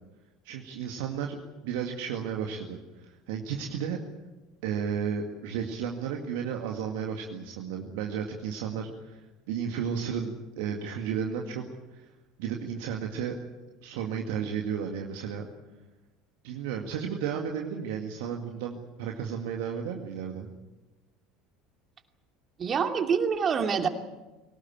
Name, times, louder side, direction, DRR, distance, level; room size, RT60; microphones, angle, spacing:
voice 1, 0.4-1.4 1.6-4.1 4.6-9.2 9.5-11.6 11.9-12.0 12.4-13.4 13.8-15.5 16.4-20.5, right 7 dB, 65° right, 2 dB, 2.1 m, -33 dB
voice 2, 22.6-23.9, right 6 dB, 35° right, 6 dB, 2.6 m, -26 dB
23.5 x 18.5 x 9.1 m, 1.1 s
figure-of-eight pair, 70°, 0 cm